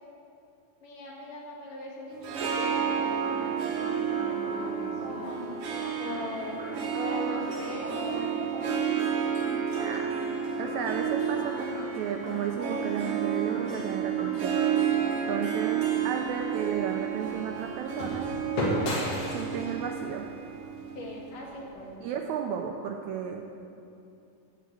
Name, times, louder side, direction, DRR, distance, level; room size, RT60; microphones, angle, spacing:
voice 1, 0.8-5.6 6.0-6.6 6.9-9.6 15.0-15.7 20.9-21.9, left 2 dB, 75° left, -3 dB, 3.4 m, -41 dB
Harp, 2.1-21.5, right 8 dB, 60° right, 1.7 m, -31 dB
sound 1, 2.7-15.1, right 1 dB, 35° right, 1.6 m, -42 dB
voice 2, 9.8-10.1 10.6-14.6 15.3-18.3 19.3-20.3 22.0-23.4, right 7 dB, 80° right, 3 dB, 1.7 m, -33 dB
sound 2, 15.8-21.9, left 1 dB, 50° left, 2.5 m, -35 dB
14.5 x 5.0 x 8.0 m, 2.7 s
omnidirectional pair, 3.8 m